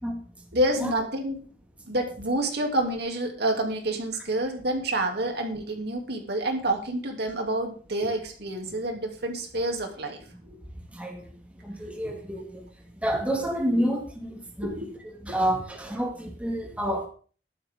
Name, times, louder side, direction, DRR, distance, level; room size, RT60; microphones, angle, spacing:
voice 1, 0.5-1.4 1.9-10.2 11.9-12.1 14.6-14.9 15.3-15.4, right 1 dB, 65° right, 3 dB, 2.9 m, -28 dB
voice 2, 11.6-12.6 13.0-14.7 15.2-17.1, equal, 5° right, 1 dB, 2.1 m, -29 dB
13.5 x 12.0 x 3.8 m, 0.41 s
head